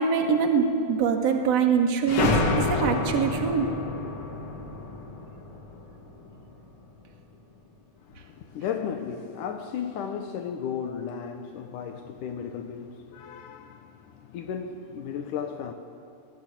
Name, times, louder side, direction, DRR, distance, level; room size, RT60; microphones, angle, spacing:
voice 1, 0.0-3.7, right 6 dB, 55° right, 2.9 m, -24 dB
sound 1, 2.1-6.5, left 3 dB, 45° left, 2.7 m, -28 dB
voice 2, 8.1-15.7, left 7 dB, 80° left, 2.6 m, -35 dB
23.0 x 19.5 x 8.6 m
omnidirectional pair, 3.6 m